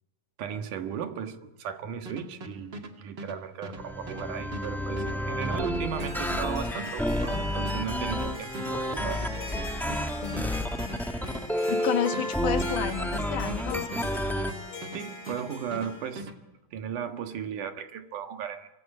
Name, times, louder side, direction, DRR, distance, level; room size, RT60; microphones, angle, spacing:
voice 1, 0.4-9.3 14.9-16.3 16.7-18.7, right 8 dB, 80° right, 6 dB, 3.1 m, -36 dB
sound 1, 2.1-15.0 15.3-16.4, right 1 dB, 40° right, 2.7 m, -41 dB
sound 2, 3.8-14.5, equal, ahead, 0.8 m, -30 dB
Harp, 5.7-16.2, left 3 dB, 30° left, 3.5 m, -42 dB
voice 2, 11.7-14.0, left 9 dB, 85° left, 6 dB, 3.3 m, -31 dB
27.0 x 24.0 x 9.2 m, 1.0 s
omnidirectional pair, 3.5 m